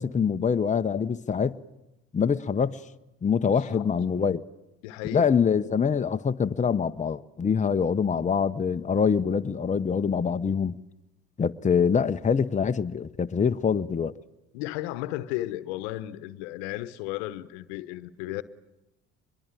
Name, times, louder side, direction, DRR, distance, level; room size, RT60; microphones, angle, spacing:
voice 1, 0.0-1.6 2.1-2.8 3.2-4.4 5.1-10.8 11.4-14.1, left 6 dB, 20° left, 0.8 m, -25 dB
voice 2, 4.8-5.3 14.5-18.4, left 16 dB, 80° left, 1.1 m, -34 dB
23.5 x 22.0 x 9.1 m
hypercardioid pair, 70°, 33 cm